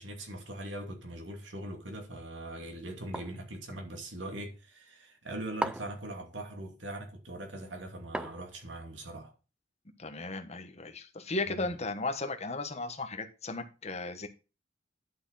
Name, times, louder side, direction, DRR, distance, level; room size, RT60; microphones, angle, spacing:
voice 1, 0.0-9.3 11.5-11.8, right 1 dB, 80° right, 2.5 m, -41 dB
sound 1, 3.1-3.5 5.6-6.1 8.1-8.7, right 1 dB, 5° right, 0.4 m, -36 dB
voice 2, 10.0-14.3, left 2 dB, 35° left, 1.3 m, -35 dB
11.0 x 6.2 x 4.0 m
head